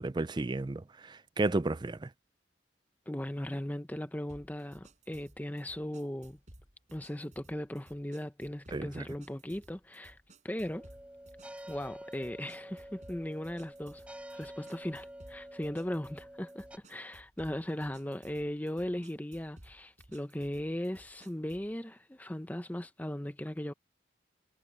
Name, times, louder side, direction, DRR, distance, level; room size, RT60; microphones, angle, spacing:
voice 1, 0.0-2.1 8.7-9.0, right 2 dB, 25° right, 0.4 m, -33 dB
voice 2, 3.1-6.4 6.9-10.2 10.4-10.9 11.7-14.0 14.3-23.7, left 1 dB, 10° left, 0.7 m, -38 dB
sound 1, 4.3-21.7, right 1 dB, 40° right, 4.6 m, -58 dB
sound 2, 10.7-16.8, right 1 dB, 5° right, 4.9 m, -48 dB
head